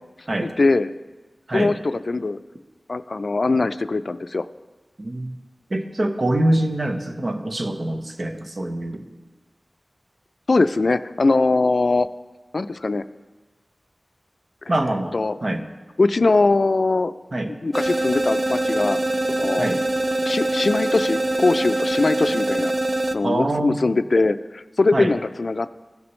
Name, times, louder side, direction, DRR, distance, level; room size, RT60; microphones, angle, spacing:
voice 1, 0.4-0.9 1.5-2.4 2.9-4.5 10.5-12.1 12.5-13.0 14.7-14.8 15.1-15.4 16.0-17.1 17.6-19.0 19.3-19.7 20.2-22.7 23.1-25.7, left 3 dB, 65° left, 13 dB, 0.3 m, -21 dB
voice 2, 5.0-5.3 5.7-9.1 14.7-15.6 17.3-17.5 19.6-19.8 23.2-23.9 24.9-25.1, right 1 dB, 55° right, 6 dB, 0.9 m, -24 dB
sound 1, 17.7-23.2, right 2 dB, 40° right, 0.4 m, -23 dB
16.5 x 6.0 x 3.2 m, 1.2 s
wide cardioid pair, 55°, 0 cm